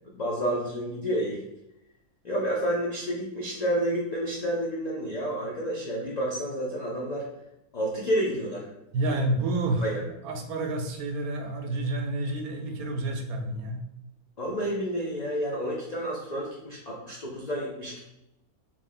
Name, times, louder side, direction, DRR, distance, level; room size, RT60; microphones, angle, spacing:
voice 1, 0.1-1.4 2.2-7.3 7.7-8.7 9.1-9.2 9.8-10.0 14.4-18.0, equal, 80° left, -4 dB, 0.3 m, -30 dB
voice 2, 8.9-9.9 10.2-13.8, right 2 dB, 75° right, 4 dB, 1.0 m, -29 dB
3.1 x 2.5 x 3.8 m, 0.86 s
omnidirectional pair, 1.6 m